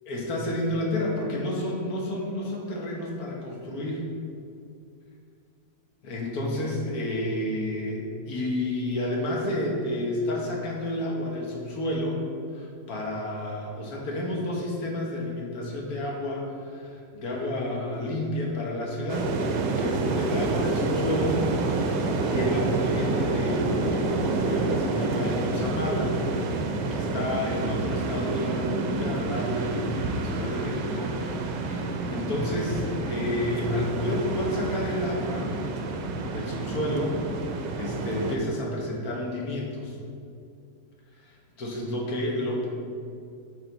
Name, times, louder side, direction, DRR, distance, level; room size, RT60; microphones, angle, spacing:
voice 1, 0.1-4.0 6.0-12.2 12.5-21.4 21.8-26.1 26.9-31.1 31.5-35.5 36.3-37.2 37.5-40.0 41.2-42.7, left 1 dB, 55° left, -2 dB, 1.4 m, -30 dB
sound 1, 19.1-38.4, right 3 dB, 75° right, 1.2 m, -28 dB
7.1 x 3.6 x 4.0 m, 2.4 s
omnidirectional pair, 2.0 m